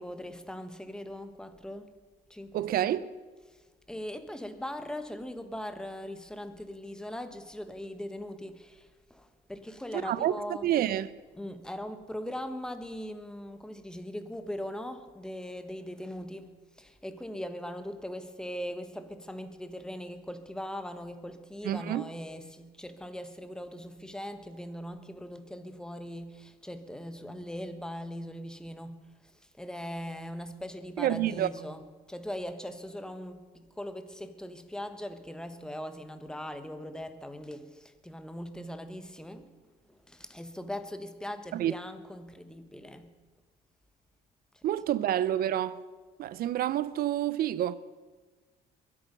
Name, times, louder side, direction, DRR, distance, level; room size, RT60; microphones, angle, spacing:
voice 1, 0.0-1.9 2.3-3.1 3.5-10.7 11.3-29.0 29.3-39.5 39.9-43.1, equal, 5° left, 1.2 m, -40 dB
voice 2, 2.5-3.1 9.9-10.3 10.6-11.1 21.6-22.0 31.0-31.5 41.5-41.7 44.6-45.8 46.2-47.8, right 12 dB, 60° right, 0.7 m, -28 dB
22.5 x 8.6 x 5.4 m
cardioid pair, 110°, 17 cm